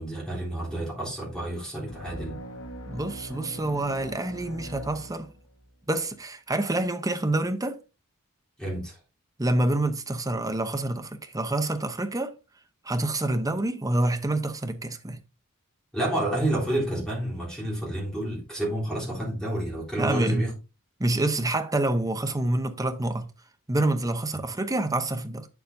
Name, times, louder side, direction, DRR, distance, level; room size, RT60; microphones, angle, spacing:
voice 1, 0.0-2.4 8.6-9.0 15.9-20.5, right 1 dB, 5° left, 3.4 m, -29 dB
sound 1, 1.9-5.7, equal, 75° left, 1.3 m, -41 dB
voice 2, 2.8-5.3 5.9-7.8 9.4-12.3 12.8-15.2 20.0-20.5 21.0-23.3 23.7-25.5, right 2 dB, 15° right, 0.8 m, -27 dB
7.8 x 7.0 x 2.6 m
head